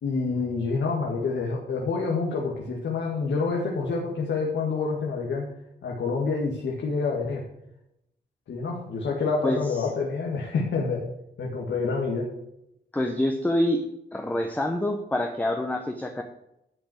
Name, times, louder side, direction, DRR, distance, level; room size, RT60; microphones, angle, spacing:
voice 1, 0.0-5.5 5.8-7.4 8.5-11.0 11.4-12.3, left 4 dB, 85° left, -1 dB, 1.8 m, -27 dB
voice 2, 12.9-13.8 14.1-16.2, left 1 dB, 10° left, 4 dB, 0.8 m, -26 dB
10.5 x 5.2 x 7.8 m, 0.84 s
wide cardioid pair, 140°, 18 cm